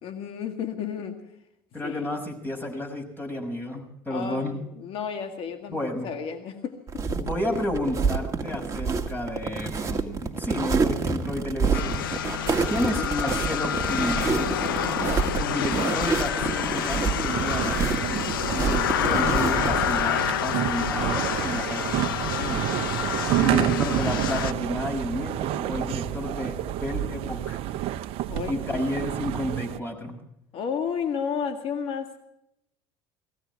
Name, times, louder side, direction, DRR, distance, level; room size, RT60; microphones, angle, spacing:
voice 1, 0.0-1.2 1.8-2.1 4.1-7.0 12.8-13.1 23.5-23.8 28.3-28.8 30.5-32.2, left 7 dB, 55° left, 6 dB, 2.0 m, -32 dB
voice 2, 1.7-4.6 5.7-6.1 7.1-12.0 12.7-14.6 15.4-22.8 23.4-27.6 28.5-30.2, left 1 dB, 20° left, 2 dB, 6.2 m, -31 dB
sound 1, 6.9-20.0, right 5 dB, 30° right, 1.9 m, -27 dB
sound 2, 11.7-24.5, left 10 dB, 90° left, 0.7 m, -28 dB
sound 3, 17.3-29.8, right 13 dB, 60° right, 0.8 m, -29 dB
19.5 x 16.0 x 4.6 m, 0.81 s
hypercardioid pair, 75°, 11 cm